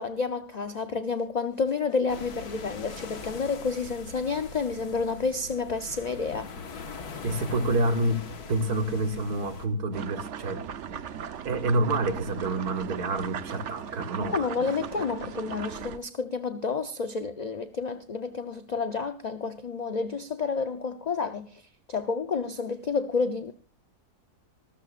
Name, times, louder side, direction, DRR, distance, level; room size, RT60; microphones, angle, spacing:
voice 1, 0.0-6.5 14.3-21.6 21.9-23.5, left 4 dB, 40° left, 0.6 m, -30 dB
sound 1, 2.1-9.7, left 4 dB, 80° left, 2.0 m, -41 dB
voice 2, 7.2-10.6 10.9-11.0 11.4-14.5, right 2 dB, 80° right, 2.1 m, -28 dB
sound 2, 9.9-16.0, right 8 dB, 55° right, 1.0 m, -38 dB
26.0 x 13.0 x 2.5 m
omnidirectional pair, 1.6 m